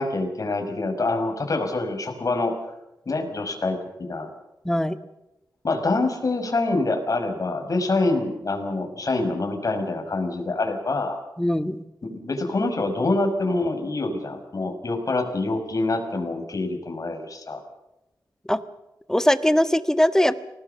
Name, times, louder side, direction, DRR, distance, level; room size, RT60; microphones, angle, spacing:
voice 1, 0.0-2.5 3.1-4.3 5.6-11.2 12.0-17.6, left 2 dB, 50° left, 4 dB, 5.7 m, -26 dB
voice 2, 4.6-5.0 11.4-11.8 18.4-18.6 19.1-20.4, left 1 dB, 5° left, 10 dB, 1.4 m, -21 dB
28.5 x 18.5 x 7.0 m, 0.94 s
wide cardioid pair, 95°, 7 cm